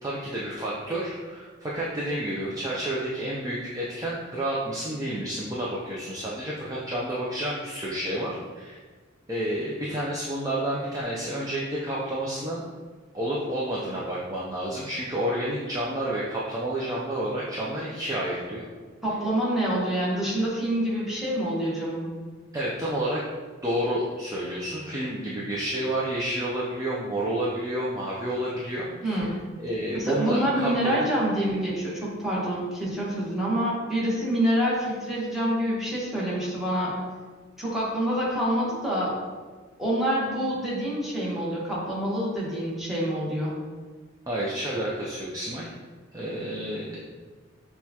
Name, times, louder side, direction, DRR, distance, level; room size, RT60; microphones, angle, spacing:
voice 1, 0.0-8.8 9.3-12.6 13.1-18.7 22.5-23.2 23.6-29.2 29.6-31.1 44.3-45.7 46.1-47.0, right 1 dB, 20° right, -6 dB, 0.4 m, -30 dB
voice 2, 19.0-22.1 29.0-29.3 30.0-37.0 37.6-39.1 39.8-43.5, right 1 dB, ahead, -7 dB, 1.1 m, -26 dB
6.3 x 2.3 x 2.8 m, 1.4 s
head